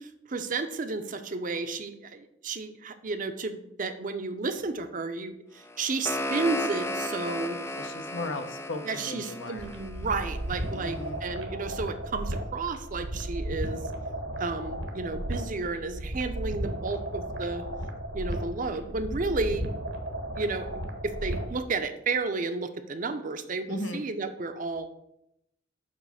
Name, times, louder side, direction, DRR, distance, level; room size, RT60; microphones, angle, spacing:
voice 1, 0.0-7.6 8.9-13.8 14.4-17.6 18.1-19.7 20.4-20.7 21.0-24.9, right 3 dB, 45° right, 9 dB, 0.6 m, -32 dB
sound 1, 5.6-10.7, left 1 dB, 15° left, 0.3 m, -35 dB
voice 2, 7.7-9.7 10.7-11.2 23.7-24.0, left 2 dB, 80° left, 7 dB, 0.8 m, -36 dB
sound 2, 9.6-21.6, right 1 dB, 70° right, 1.1 m, -35 dB
7.4 x 3.1 x 6.2 m, 0.79 s
head